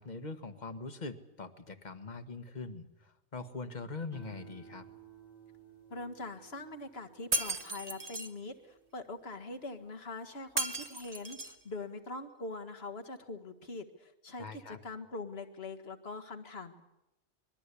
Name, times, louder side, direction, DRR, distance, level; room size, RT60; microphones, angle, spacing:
voice 1, 0.0-4.9 14.4-14.8, left 3 dB, 40° left, 9 dB, 1.5 m, -42 dB
sound 1, 4.1-10.6 11.1-11.6, right 8 dB, 90° right, 4.5 m, -58 dB
voice 2, 5.9-16.8, left 2 dB, 65° left, 6 dB, 2.0 m, -43 dB
Shatter, 7.3-8.3 10.6-11.6, right 2 dB, 35° right, 1.5 m, -35 dB
25.5 x 21.5 x 8.4 m, 0.93 s
omnidirectional pair, 1.1 m